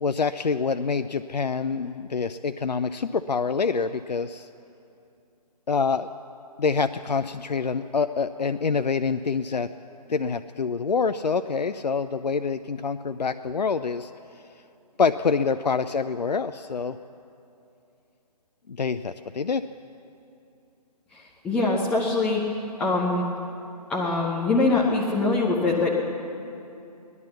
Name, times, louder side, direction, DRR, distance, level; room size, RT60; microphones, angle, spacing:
voice 1, 0.0-4.5 5.7-6.1 6.6-9.7 10.1-14.1 15.0-17.0 18.7-19.6, left 5 dB, 80° left, 10 dB, 0.5 m, -26 dB
voice 2, 21.1-22.4 22.8-23.2 23.9-25.9, left 3 dB, 5° left, -5 dB, 0.8 m, -23 dB
17.5 x 11.0 x 7.0 m, 2.7 s
figure-of-eight pair, 140°, 21 cm